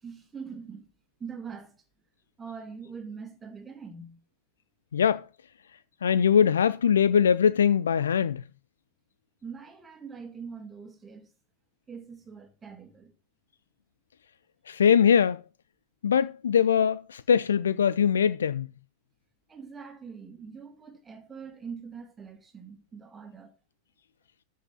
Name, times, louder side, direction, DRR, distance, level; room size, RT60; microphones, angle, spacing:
voice 1, 0.0-0.9 1.2-1.8 2.4-4.2 9.4-11.3 11.9-13.1 19.5-23.5, right 5 dB, 15° right, 2.1 m, -43 dB
voice 2, 4.9-5.3 6.0-8.4 14.7-15.4 16.0-18.7, left 7 dB, 65° left, 0.5 m, -22 dB
14.0 x 5.6 x 5.5 m
figure-of-eight pair, 90°, 0 cm